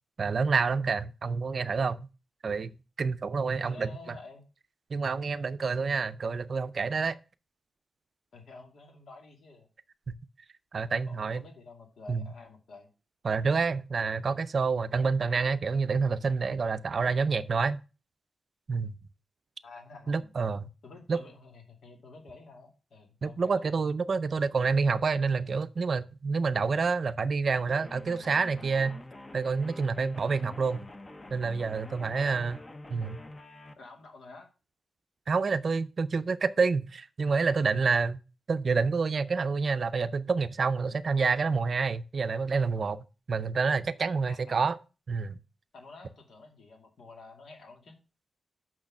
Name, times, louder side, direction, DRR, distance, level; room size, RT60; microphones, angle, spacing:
voice 1, 0.2-2.1 2.4-2.7 3.0-3.9 4.9-7.2 10.7-11.4 12.1-12.3 13.2-17.8 18.7-18.9 20.1-20.7 21.1-21.2 23.2-29.0 29.3-30.9 31.3-32.6 32.9-33.2 35.3-38.2 38.5-44.8 45.1-45.4, right 4 dB, 45° right, 0.5 m, -28 dB
voice 2, 3.6-4.4 8.3-9.7 10.9-12.9 19.6-20.3 20.8-23.8 32.1-32.6 33.8-34.5 40.8-41.0 44.3-44.7 45.7-48.0, left 3 dB, 80° left, 2.5 m, -50 dB
sound 1, 27.7-33.7, left 2 dB, 20° left, 0.8 m, -47 dB
6.5 x 6.1 x 5.9 m
wide cardioid pair, 155°, 0 cm